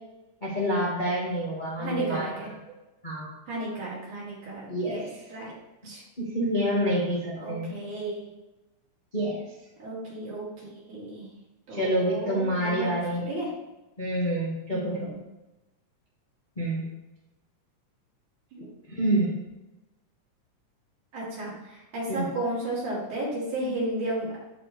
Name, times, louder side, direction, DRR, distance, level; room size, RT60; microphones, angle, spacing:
voice 1, 0.4-2.4 3.0-3.3 4.7-5.0 6.2-7.7 9.1-9.4 11.7-13.3 14.0-15.1 16.6-16.8 18.9-19.3 22.1-22.3, right 1 dB, 30° left, -6 dB, 0.8 m, -27 dB
voice 2, 1.8-2.5 3.5-5.5 5.8-6.0 7.4-8.2 9.8-11.3 11.7-12.9 13.3-13.5 14.7-15.1 18.5-18.7 21.1-24.4, right 1 dB, 75° right, -6 dB, 4.2 m, -33 dB
13.5 x 4.5 x 3.3 m, 1.1 s
omnidirectional pair, 3.5 m